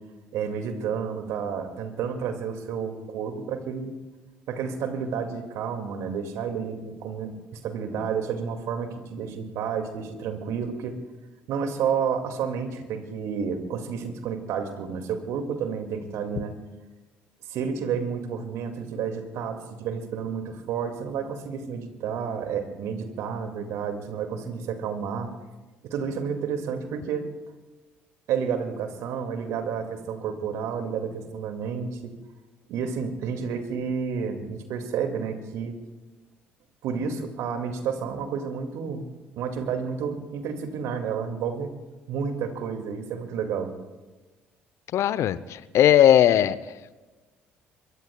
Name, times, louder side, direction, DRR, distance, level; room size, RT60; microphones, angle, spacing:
voice 1, 0.3-4.0 4.5-11.0 11.5-16.5 17.5-25.3 25.8-27.3 28.3-32.1 32.7-35.7 36.8-39.1 39.4-41.7 42.1-43.7, right 6 dB, 65° right, 6 dB, 2.2 m, -30 dB
voice 2, 44.9-46.6, left 11 dB, 60° left, 16 dB, 0.7 m, -18 dB
25.5 x 23.0 x 2.3 m, 1.2 s
hypercardioid pair, 55°, 6 cm